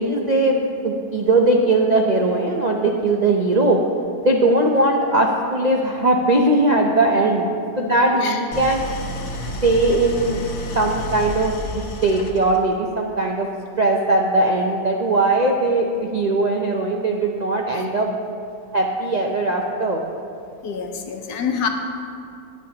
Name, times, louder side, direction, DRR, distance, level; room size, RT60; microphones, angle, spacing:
voice 1, 0.0-3.8 4.2-7.5 7.8-8.9 9.6-10.4 10.7-13.5 13.8-18.1 18.7-20.0, right 2 dB, 80° right, 0 dB, 0.3 m, -19 dB
Idling, 8.5-12.7, equal, 50° left, 1.0 m, -30 dB
voice 2, 20.6-21.7, left 7 dB, 75° left, 4 dB, 1.4 m, -26 dB
20.5 x 7.3 x 2.9 m, 2.5 s
omnidirectional pair, 1.8 m